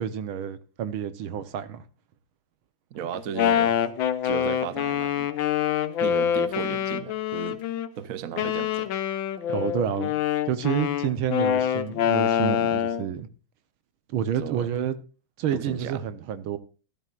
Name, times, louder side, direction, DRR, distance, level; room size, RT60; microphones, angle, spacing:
voice 1, 0.0-1.8 9.5-10.1 10.5-13.3 14.1-15.0 15.4-16.6, right 9 dB, 75° right, 1.8 m, -29 dB
voice 2, 2.9-3.8 4.2-5.3 6.0-7.6 8.0-8.9 14.4-14.7 15.5-16.0, right 8 dB, 60° right, 0.9 m, -35 dB
Wind instrument woodwind instrument, 3.1-7.9 8.4-13.1, left 9 dB, 70° left, 1.6 m, -25 dB
14.5 x 12.5 x 2.5 m
omnidirectional pair, 2.3 m